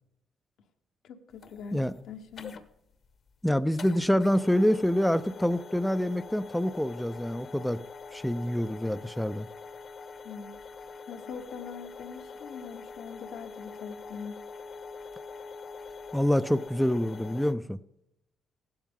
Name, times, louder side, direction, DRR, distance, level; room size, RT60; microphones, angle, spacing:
voice 1, 1.0-2.6 10.2-10.6 11.1-14.3, left 6 dB, 75° left, 6 dB, 1.2 m, -42 dB
sound 1, 1.3-17.5, left 4 dB, 50° left, 1.0 m, -45 dB
voice 2, 3.4-7.8 8.1-9.5 16.1-17.8, equal, 5° left, 12 dB, 0.4 m, -26 dB
15.5 x 12.0 x 3.7 m, 0.83 s
cardioid pair, 90°, 0 cm